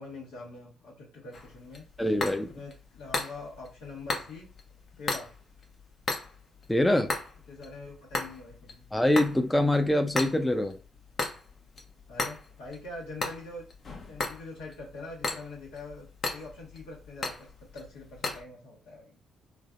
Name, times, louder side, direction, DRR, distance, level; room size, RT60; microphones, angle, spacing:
voice 1, 0.0-1.8 2.5-4.5 5.0-5.3 7.5-8.8 12.1-13.6 14.1-16.0 16.3-17.5 17.7-19.2, left 2 dB, 90° left, -4 dB, 1.3 m, -43 dB
sound 1, 1.3-18.4, left 3 dB, 50° left, 0.8 m, -37 dB
voice 2, 2.0-2.5 6.7-7.1 8.9-10.8, left 1 dB, 10° left, 6 dB, 0.4 m, -24 dB
3.3 x 2.0 x 2.4 m, 0.34 s
supercardioid pair, 60°, 0 cm